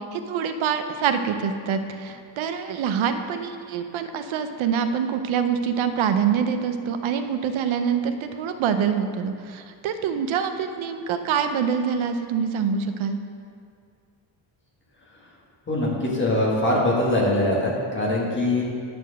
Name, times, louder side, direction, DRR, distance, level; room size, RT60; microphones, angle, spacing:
voice 1, 0.1-13.2, right 7 dB, 75° right, 8 dB, 0.7 m, -25 dB
voice 2, 15.7-18.6, left 1 dB, 25° left, -4 dB, 1.6 m, -22 dB
10.0 x 4.4 x 6.4 m, 2.2 s
wide cardioid pair, 175°, 48 cm